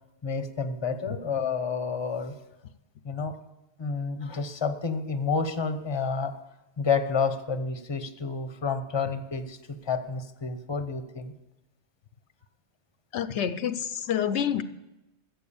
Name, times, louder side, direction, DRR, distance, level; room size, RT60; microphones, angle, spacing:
voice 1, 0.2-2.3 3.0-3.3 3.8-6.3 6.8-11.3, left 5 dB, 25° left, 9 dB, 0.9 m, -29 dB
voice 2, 13.1-14.6, left 9 dB, 80° left, 13 dB, 0.9 m, -28 dB
14.0 x 7.8 x 7.0 m, 0.96 s
omnidirectional pair, 1.2 m